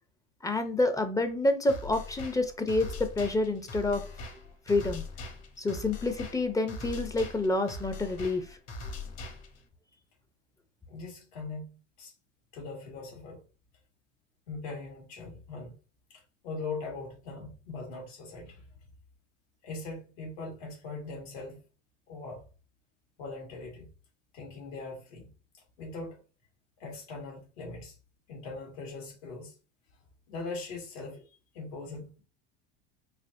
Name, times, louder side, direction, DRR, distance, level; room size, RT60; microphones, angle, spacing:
voice 1, 0.4-4.0 4.7-5.0 5.6-8.6, left 2 dB, 10° left, 0.5 m, -28 dB
sound 1, 1.7-9.7, left 3 dB, 50° left, 1.3 m, -41 dB
voice 2, 10.9-12.1 12.5-13.4 14.5-15.8 16.1-18.6 19.6-21.6 22.1-22.4 23.2-23.9 24.3-25.3 25.8-26.2 26.8-27.9 28.3-29.5 30.3-31.2 31.5-32.2, left 3 dB, 80° left, 2.1 m, -41 dB
4.1 x 2.8 x 2.6 m
hypercardioid pair, 100°, 32 cm